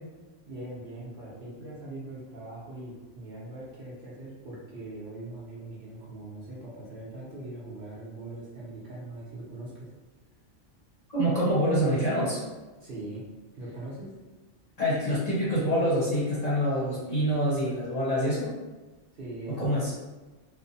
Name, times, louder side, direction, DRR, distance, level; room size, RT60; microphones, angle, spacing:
voice 1, 0.5-9.9 12.8-13.2 13.6-14.1 19.1-19.9, right 2 dB, 50° right, -7 dB, 0.9 m, -41 dB
voice 2, 11.1-12.4 14.8-18.5 19.5-19.9, equal, 40° left, -8 dB, 0.7 m, -26 dB
2.9 x 2.1 x 2.6 m, 1.2 s
omnidirectional pair, 1.2 m